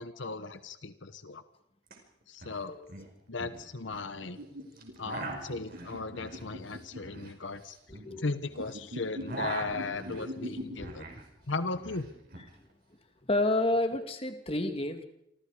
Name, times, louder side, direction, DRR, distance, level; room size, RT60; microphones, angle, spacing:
voice 1, 0.0-1.4 2.3-2.7 3.3-4.4 5.0-7.8 8.2-11.0 11.5-12.1, left 3 dB, 80° left, 11 dB, 1.2 m, -36 dB
sound 1, 1.9-2.0 2.2-2.6 2.9-4.1 4.8-8.7 9.0-11.3 11.5-12.5, right 2 dB, 50° right, 5.2 m, -42 dB
sound 2, 4.2-7.2 8.5-10.7, left 1 dB, 90° right, 5.3 m, -43 dB
voice 2, 7.9-8.2 10.1-10.5 10.8-10.9 13.2-15.0, left 2 dB, 30° left, 6 dB, 2.3 m, -30 dB
28.0 x 25.5 x 5.0 m, 0.81 s
head